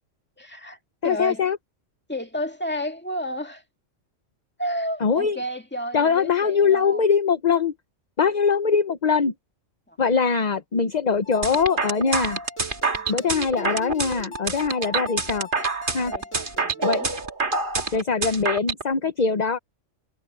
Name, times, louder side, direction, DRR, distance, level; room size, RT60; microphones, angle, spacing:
voice 1, 0.4-1.4 2.1-3.6 4.6-7.0 9.9-10.0 13.0-13.8 14.6-15.0 16.0-17.1, equal, 10° left, 2.0 m, -32 dB
voice 2, 1.0-1.6 5.0-5.4 5.9-7.7 8.2-9.3 10.0-12.4 13.1-15.5 15.9-16.1 16.8-17.0 17.9-19.6, left 5 dB, 40° left, 0.9 m, -22 dB
sound 1, 11.2-17.1, left 1 dB, 90° left, 3.5 m, -39 dB
sound 2, 11.4-18.8, right 3 dB, 45° right, 1.8 m, -26 dB
omnidirectional pair, 1.3 m